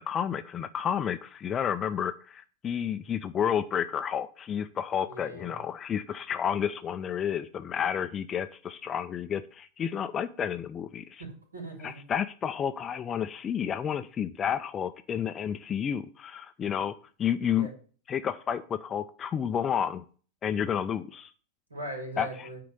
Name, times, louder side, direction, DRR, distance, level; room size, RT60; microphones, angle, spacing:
voice 1, 0.0-11.2 11.8-17.7 18.1-20.0 20.4-21.3 22.2-22.3, left 8 dB, 25° left, 11 dB, 0.5 m, -31 dB
voice 2, 5.1-5.6 11.2-12.0 17.5-17.7 21.7-22.6, right 1 dB, 75° right, 1 dB, 3.3 m, -40 dB
9.4 x 3.9 x 6.8 m, 0.41 s
figure-of-eight pair, 90°, 0 cm